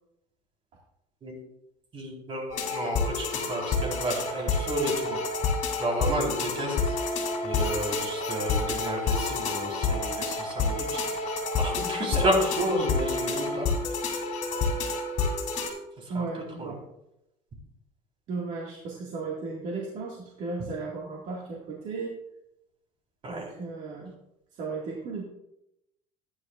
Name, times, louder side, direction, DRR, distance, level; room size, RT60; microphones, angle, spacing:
voice 1, 1.9-5.2 5.8-6.9 7.4-11.0 11.6-13.7 16.1-16.2 16.6-16.7 23.2-23.5, right 1 dB, 35° right, -1 dB, 4.2 m, -31 dB
sound 1, 2.5-15.7, left 4 dB, 50° left, 2.9 m, -29 dB
voice 2, 16.1-16.8 18.3-22.1 23.3-24.1 24.6-25.2, right 4 dB, 55° right, -3 dB, 2.1 m, -35 dB
14.5 x 10.0 x 2.5 m, 0.86 s
cardioid pair, 125°, 15 cm